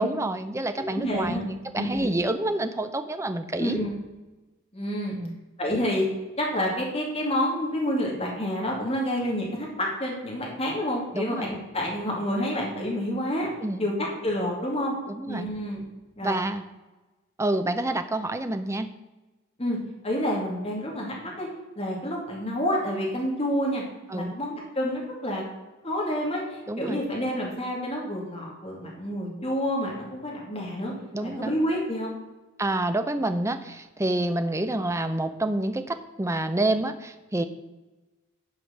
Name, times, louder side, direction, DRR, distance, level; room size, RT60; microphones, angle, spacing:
voice 1, 0.0-3.8 5.1-5.4 11.1-11.5 13.6-13.9 15.1-15.5 16.2-16.6 17.4-18.9 24.1-24.3 26.7-27.0 31.1-31.6 32.6-37.4, right 1 dB, 15° right, 8 dB, 0.6 m, -28 dB
voice 2, 0.7-1.4 1.7-2.1 3.6-3.9 4.7-5.2 5.6-6.1 6.4-13.5 13.8-14.9 15.2-15.9 16.2-16.4 19.6-19.8 20.0-21.5 21.8-23.8 24.1-25.4 25.8-30.9 31.2-32.2, equal, 30° left, -2 dB, 2.4 m, -28 dB
11.0 x 5.0 x 6.4 m, 1.1 s
head